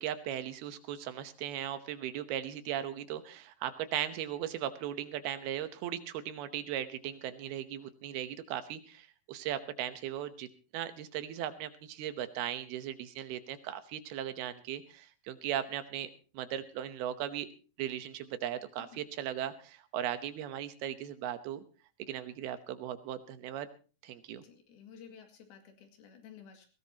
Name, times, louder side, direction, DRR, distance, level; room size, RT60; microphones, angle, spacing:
voice 1, 0.0-10.5 10.7-17.5 17.8-21.6 22.0-23.7 24.0-24.4, right 11 dB, 85° right, 11 dB, 3.0 m, -38 dB
voice 2, 24.4-26.7, left 7 dB, 80° left, 4 dB, 4.1 m, -53 dB
20.0 x 17.0 x 2.9 m, 0.36 s
omnidirectional pair, 4.4 m